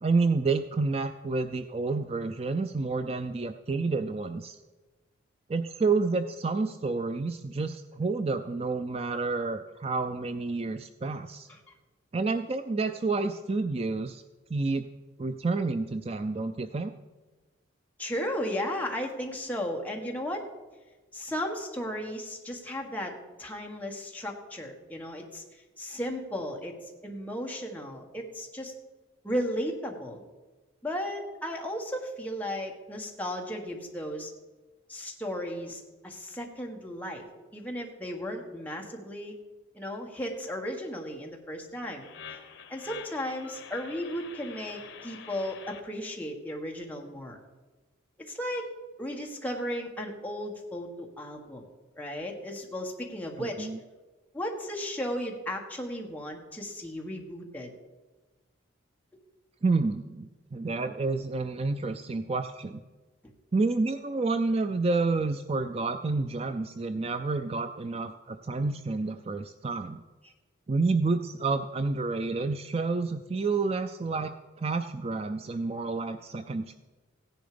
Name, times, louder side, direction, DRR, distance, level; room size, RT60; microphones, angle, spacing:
voice 1, 0.0-4.6 5.5-11.5 12.1-14.2 14.5-14.9 15.2-16.9 53.4-53.8 59.6-62.8 63.5-70.0 70.7-76.7, right 3 dB, 30° right, 9 dB, 0.4 m, -29 dB
voice 2, 18.0-20.5 21.1-26.7 27.0-28.7 29.2-30.2 30.8-34.3 34.9-39.4 39.7-42.4 42.7-47.4 48.2-48.7 49.0-51.7 52.0-53.7 54.3-57.7 70.2-70.3, equal, 10° left, 0 dB, 1.6 m, -35 dB
sound 1, 42.0-45.8, left 6 dB, 75° left, 1.3 m, -46 dB
15.5 x 10.5 x 5.2 m, 1.2 s
head